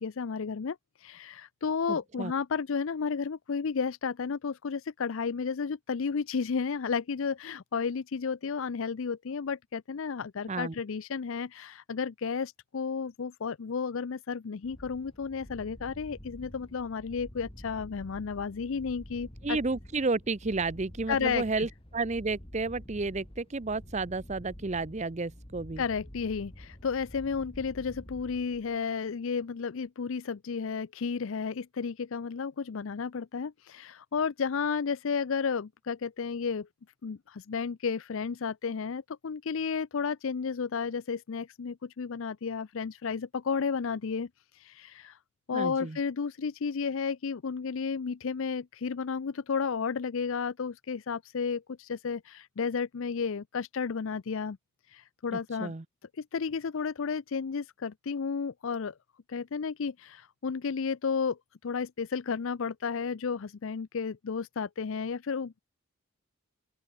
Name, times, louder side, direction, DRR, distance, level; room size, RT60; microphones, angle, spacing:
voice 1, 0.0-19.6 21.1-21.7 25.8-36.7 37.0-45.2 45.5-54.6 54.9-55.7 56.1-58.9 59.3-65.6, left 5 dB, 65° left, 0.5 m, -32 dB
voice 2, 1.9-2.3 10.5-10.7 19.4-25.8 45.5-46.0 55.3-55.8, right 3 dB, 30° right, 0.6 m, -32 dB
sound 1, 14.6-28.9, equal, 25° left, 2.7 m, -48 dB
open air
head